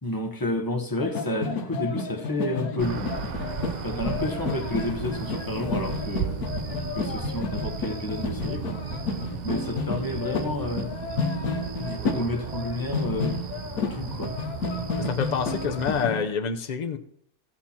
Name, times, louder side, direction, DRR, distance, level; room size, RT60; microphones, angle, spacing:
voice 1, 0.0-3.2 3.8-6.4 6.9-8.8 9.4-10.9 11.8-13.4 13.9-14.4, left 1 dB, 15° left, 1.0 m, -30 dB
sound 1, 1.0-16.3, left 3 dB, 80° left, 1.6 m, -31 dB
sound 2, 2.8-16.1, right 6 dB, 50° right, 0.5 m, -35 dB
voice 2, 15.0-17.0, left 6 dB, 40° left, 0.6 m, -27 dB
14.0 x 7.6 x 4.4 m
omnidirectional pair, 1.6 m